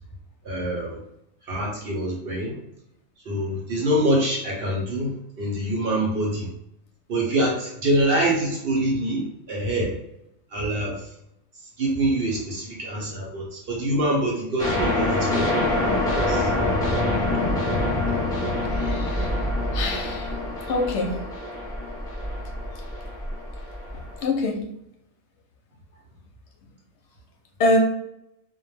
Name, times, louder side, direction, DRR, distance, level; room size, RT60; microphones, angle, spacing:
voice 1, 0.4-1.0 1.5-2.6 3.3-6.5 7.1-9.9 10.5-10.9 11.8-15.5 16.1-16.5, right 1 dB, 55° right, -2 dB, 0.8 m, -25 dB
sound 1, 14.6-24.2, left 1 dB, 5° left, 0.6 m, -25 dB
voice 2, 18.8-19.3 19.7-20.3 20.7-21.1 24.2-24.6 27.6-27.8, left 2 dB, 70° left, 2 dB, 0.8 m, -24 dB
2.2 x 2.1 x 3.1 m, 0.80 s
omnidirectional pair, 1.3 m